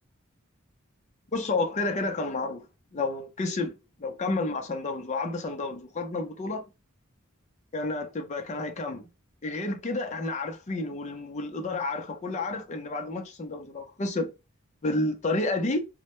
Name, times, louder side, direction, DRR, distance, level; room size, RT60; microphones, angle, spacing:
voice 1, 1.3-2.7 2.9-3.7 4.0-6.6 7.7-9.1 9.4-14.3 14.8-15.8, left 2 dB, 35° left, 0.5 m, -30 dB
2.1 x 2.0 x 2.9 m
head